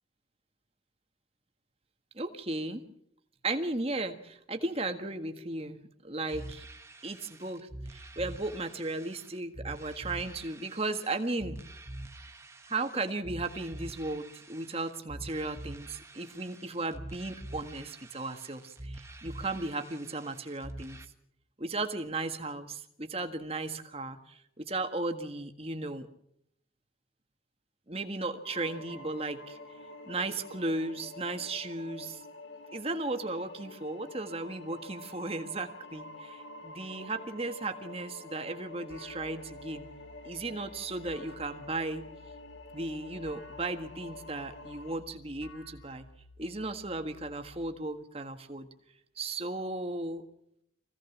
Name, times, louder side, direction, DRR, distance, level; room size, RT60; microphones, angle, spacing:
voice 1, 2.1-2.8 3.4-6.7 7.0-11.6 12.7-21.0 21.6-26.1 27.9-29.6 30.0-32.2 32.7-39.9 40.2-42.0 42.7-46.0 46.4-48.7 49.2-50.2, right 2 dB, 30° right, 6 dB, 1.6 m, -35 dB
sound 1, 6.3-21.0, right 1 dB, 15° right, 1.4 m, -46 dB
sound 2, 28.4-45.0, left 2 dB, 65° left, 2.3 m, -48 dB
Ship Radar, 38.9-47.6, left 1 dB, 80° left, 6.1 m, -55 dB
24.5 x 17.0 x 7.3 m, 0.74 s
head